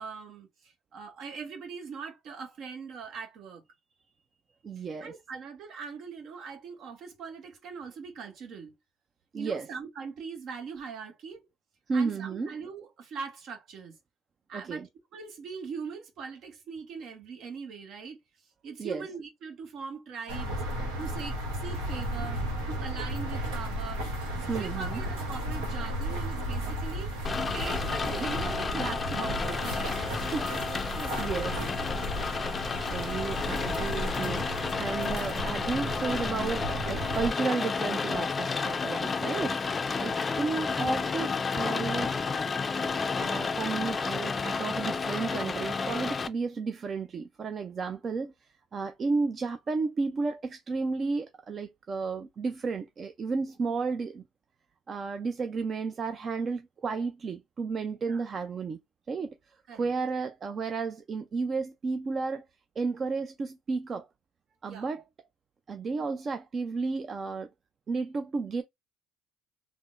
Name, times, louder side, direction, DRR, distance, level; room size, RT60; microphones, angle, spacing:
voice 1, 0.0-3.6 4.8-8.7 9.3-11.4 11.9-14.0 14.5-18.2 18.6-20.6 21.0-22.4 22.7-24.0 24.4-27.1 27.5-30.0 39.9-40.2 58.0-58.2 59.7-59.9 64.6-64.9, right 5 dB, 60° right, 0.8 m, -41 dB
voice 2, 4.6-5.1 9.3-9.7 11.9-12.5 14.5-14.9 18.8-19.0 24.5-25.0 29.8-30.5 30.9-31.7 32.9-34.4 34.8-39.6 40.0-42.1 43.2-48.3 48.7-54.2 54.9-58.8 59.1-62.5 62.8-64.1 64.6-65.0 65.7-67.5 67.9-68.6, right 4 dB, 40° right, 0.4 m, -32 dB
sound 1, 20.3-37.3, equal, 90° right, 1.0 m, -34 dB
Rain, 27.2-46.3, left 4 dB, 30° left, 0.4 m, -31 dB
3.4 x 2.0 x 2.5 m
supercardioid pair, 70°, 0 cm